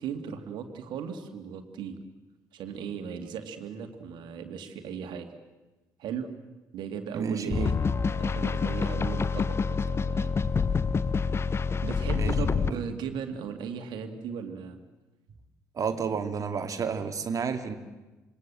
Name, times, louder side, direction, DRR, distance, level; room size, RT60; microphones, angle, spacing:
voice 1, 0.0-2.0 2.5-5.3 6.0-6.3 6.7-7.8 8.2-10.4 11.8-14.8, right 7 dB, 55° right, 7 dB, 2.4 m, -37 dB
voice 2, 7.1-7.7 12.1-12.3 12.7-12.9 15.7-17.8, right 6 dB, 40° right, 8 dB, 2.2 m, -31 dB
sound 1, 7.5-12.7, left 5 dB, 25° left, 0.9 m, -27 dB
26.5 x 22.5 x 7.6 m, 1.2 s
figure-of-eight pair, 50°, 9 cm